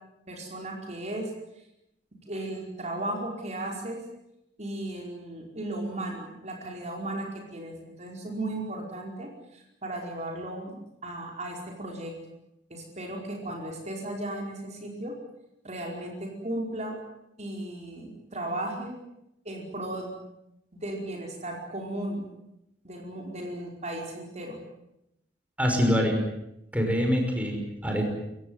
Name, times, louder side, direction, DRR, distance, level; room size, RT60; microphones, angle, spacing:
voice 1, 0.3-1.3 2.3-4.0 4.6-12.1 12.7-15.1 15.6-17.0 17.4-19.0 19.4-20.1 20.7-22.3 22.8-24.6, right 1 dB, 40° right, 1 dB, 5.0 m, -35 dB
voice 2, 25.6-26.2 26.7-28.0, equal, 10° right, 2 dB, 5.6 m, -25 dB
28.5 x 15.5 x 9.5 m, 0.84 s
head